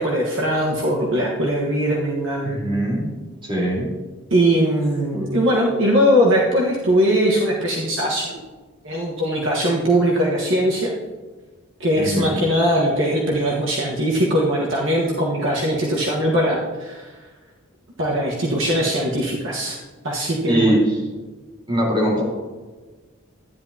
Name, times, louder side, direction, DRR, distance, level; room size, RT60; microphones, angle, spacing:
voice 1, 0.0-2.6 4.3-8.3 8.8-10.9 11.8-17.1 18.0-19.8 20.0-20.7, equal, 65° right, -3 dB, 1.4 m, -20 dB
voice 2, 2.4-3.1 3.4-3.9 5.1-5.3 12.0-12.4 20.5-21.0 21.7-22.2, right 1 dB, 25° right, -5 dB, 3.8 m, -21 dB
13.0 x 10.5 x 2.8 m, 1.3 s
head